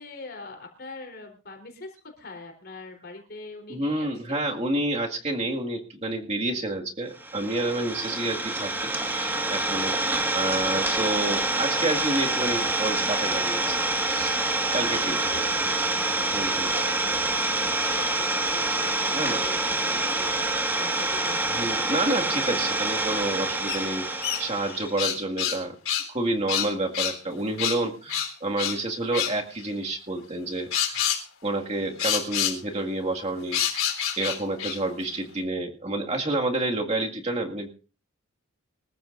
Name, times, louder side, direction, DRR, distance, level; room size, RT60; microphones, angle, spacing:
voice 1, 0.0-4.4 15.3-21.5, left 3 dB, 50° left, 2 dB, 3.9 m, -43 dB
voice 2, 3.7-13.8 14.1-14.4 14.7-15.3 16.3-16.7 19.1-19.4 21.5-24.1 24.4-25.8 26.1-31.0 31.4-33.6 34.2-37.7, right 2 dB, 30° right, 2 dB, 2.1 m, -29 dB
Idling, 7.2-24.9, right 2 dB, 10° right, 1.8 m, -26 dB
sound 1, 23.7-23.8 24.2-25.6 25.8-26.1 26.5-27.2 27.6-27.8 28.1-28.8 29.1-29.3 30.7-31.2 32.0-32.6 33.5-34.8, left 9 dB, 85° left, 3.9 m, -27 dB
25.0 x 14.5 x 2.6 m, 0.34 s
head